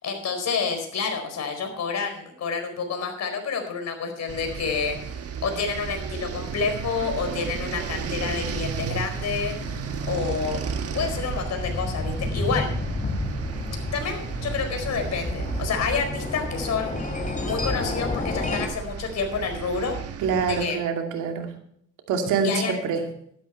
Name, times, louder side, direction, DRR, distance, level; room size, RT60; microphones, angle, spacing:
voice 1, 0.0-9.6 10.1-10.6 10.9-12.7 13.9-17.0 17.4-20.0 20.5-20.8 22.4-22.7, left 5 dB, 60° left, 5 dB, 4.5 m, -29 dB
sound 1, 4.3-20.7, right 7 dB, 50° right, 1.3 m, -34 dB
sound 2, 7.9-18.7, left 2 dB, 25° left, 3.0 m, -32 dB
voice 2, 20.2-21.5 22.1-23.0, right 5 dB, 90° right, 3 dB, 2.5 m, -25 dB
12.5 x 12.0 x 4.5 m, 0.65 s
cardioid pair, 90°, 30 cm